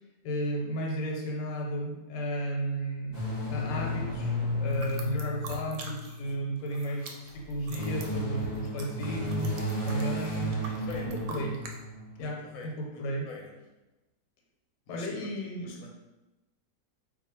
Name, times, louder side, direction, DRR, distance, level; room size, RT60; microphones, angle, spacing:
voice 1, 0.2-3.2 3.5-9.5 9.8-10.5 11.0-11.6 12.2-13.3 14.9-15.7, right 1 dB, 85° left, 0 dB, 1.3 m, -34 dB
sound 1, 3.1-6.5 7.4-12.2, left 1 dB, 30° left, 0.8 m, -33 dB
sound 2, 4.7-6.3 6.6-11.8, right 4 dB, 80° right, 1.2 m, -45 dB
voice 2, 10.8-11.1 12.1-13.5 14.9-15.3 15.6-15.9, left 4 dB, 65° left, 0 dB, 1.0 m, -45 dB
2.7 x 2.4 x 4.1 m, 1.0 s
omnidirectional pair, 1.9 m